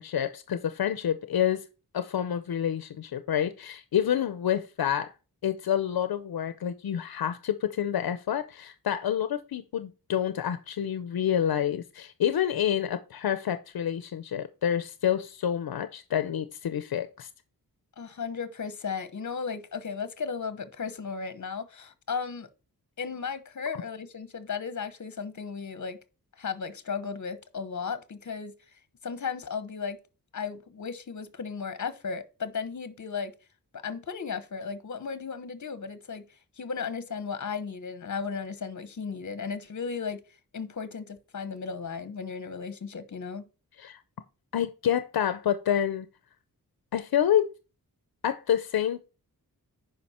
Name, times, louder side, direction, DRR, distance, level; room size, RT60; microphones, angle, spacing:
voice 1, 0.0-1.6 1.9-5.1 5.4-17.3 43.8-44.0 44.5-46.1 46.9-47.5 48.2-49.0, left 9 dB, 90° left, 0.7 m, -28 dB
voice 2, 18.0-22.5 23.0-26.0 26.4-28.5 29.0-30.0 30.3-33.3 33.8-36.2 36.6-40.2 40.5-43.4, left 5 dB, 55° left, 1.1 m, -35 dB
9.6 x 5.4 x 4.3 m
wide cardioid pair, 145°, 35 cm